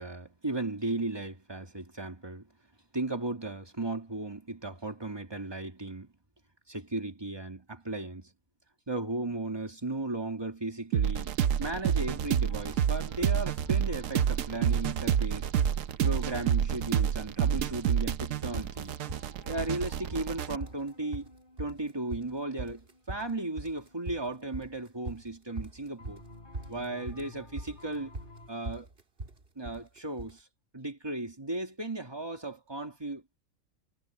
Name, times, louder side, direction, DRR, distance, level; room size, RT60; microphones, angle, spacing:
voice 1, 0.0-2.5 2.9-6.1 6.7-8.3 8.9-11.3 11.6-15.5 16.0-18.9 19.4-21.3 21.6-26.2 26.7-28.1 28.5-28.9 29.6-30.5 30.7-33.2, right 2 dB, 20° right, 2.2 m, -36 dB
sound 1, 10.9-20.6, right 9 dB, 75° right, 1.1 m, -29 dB
sound 2, 11.0-11.6 12.0-18.2 18.6-25.2 26.0-28.5, left 2 dB, 35° left, 4.5 m, -56 dB
sound 3, 12.2-12.4 12.7-13.4 13.6-14.4 14.6-14.9 15.2-15.3 15.6-16.4 16.6-17.3 17.6-30.4, right 2 dB, 45° right, 2.4 m, -42 dB
omnidirectional pair, 1.4 m